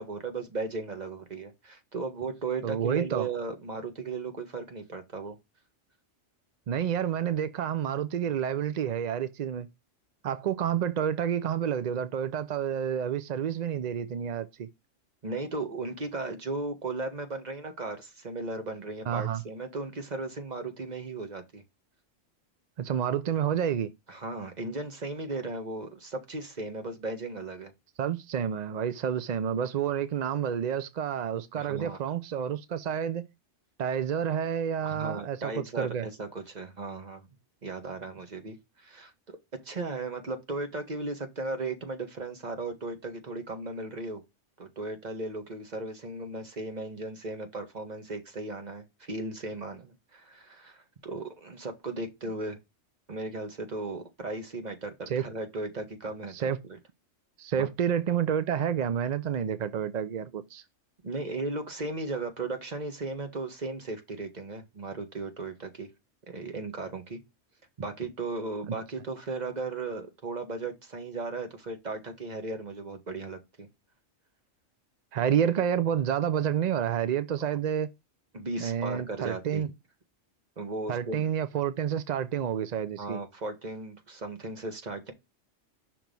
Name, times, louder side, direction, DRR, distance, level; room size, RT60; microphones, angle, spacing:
voice 1, 0.0-5.4 15.2-21.6 24.1-27.7 31.5-32.0 34.9-37.3 37.6-39.1 39.6-44.2 44.6-52.6 53.1-56.8 57.6-57.7 61.0-65.9 66.3-67.2 67.8-73.7 78.3-79.6 80.6-81.2 83.0-85.1, right 3 dB, 35° right, 1.3 m, -36 dB
voice 2, 2.6-3.3 6.7-9.7 10.2-14.7 19.1-19.4 22.8-23.9 28.0-33.3 33.8-36.0 55.1-55.2 56.3-56.6 57.4-60.6 75.1-77.9 78.6-79.7 80.9-83.2, right 9 dB, 65° right, 0.4 m, -29 dB
5.9 x 3.1 x 5.2 m
omnidirectional pair, 1.3 m